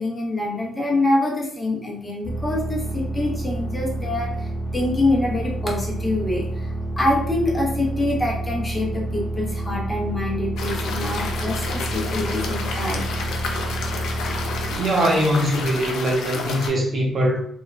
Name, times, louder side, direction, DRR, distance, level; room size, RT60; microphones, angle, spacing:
voice 1, 0.0-13.1, left 2 dB, 15° left, -2 dB, 0.4 m, -25 dB
sound 1, 2.2-14.8, right 1 dB, 30° left, 0.8 m, -29 dB
sound 2, 10.6-16.7, left 4 dB, 85° left, 0.4 m, -30 dB
voice 2, 14.7-17.4, right 1 dB, 35° right, -1 dB, 0.7 m, -21 dB
3.0 x 2.0 x 2.3 m, 0.62 s
cardioid pair, 160°, 0 cm